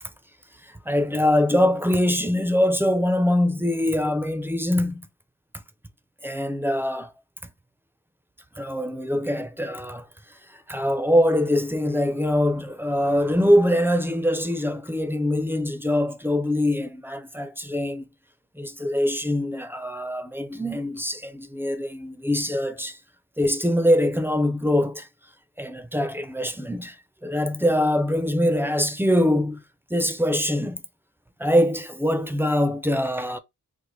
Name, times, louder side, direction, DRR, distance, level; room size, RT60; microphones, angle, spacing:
voice 1, 0.6-5.1 6.2-7.1 8.6-18.1 18.5-23.0 23.4-25.1 25.6-29.6 29.9-30.8 31.4-33.4, left 1 dB, 5° right, 0.4 m, -23 dB
3.4 x 2.1 x 3.0 m
wide cardioid pair, 85°, 35 cm